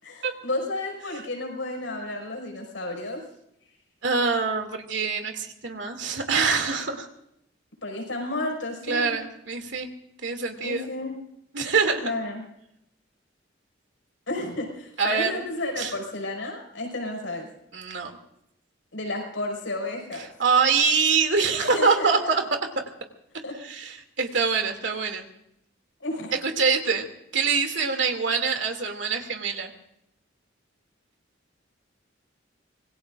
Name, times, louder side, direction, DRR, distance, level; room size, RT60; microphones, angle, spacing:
voice 1, 0.0-3.2 7.8-9.2 10.6-11.2 12.0-12.4 14.3-17.5 18.9-20.3 21.6-22.3 23.4-23.6 26.0-26.3, left 2 dB, 85° left, 2 dB, 5.6 m, -32 dB
voice 2, 4.0-7.1 8.9-9.9 10.2-10.9 11.5-12.1 15.0-15.5 15.8-15.9 17.7-18.1 20.4-22.4 23.6-25.3 26.4-27.1 27.3-29.7, right 5 dB, 70° right, 5 dB, 2.6 m, -24 dB
26.0 x 21.0 x 2.6 m, 0.77 s
head